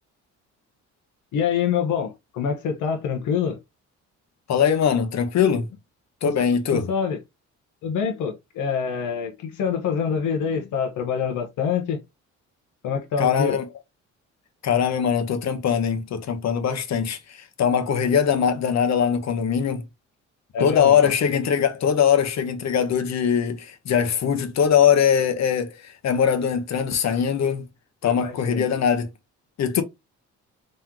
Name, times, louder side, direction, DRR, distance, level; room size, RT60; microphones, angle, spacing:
voice 1, 1.3-3.6 6.2-6.3 6.7-7.2 7.8-12.0 12.8-13.6 20.5-21.1 28.0-28.6, left 7 dB, 85° left, 1.0 m, -26 dB
voice 2, 4.5-5.7 6.2-6.9 13.2-13.6 14.6-19.8 20.6-27.6 28.0-29.1 29.6-29.8, left 7 dB, 60° left, 1.0 m, -21 dB
3.8 x 3.3 x 2.9 m
cardioid pair, 90°, 30 cm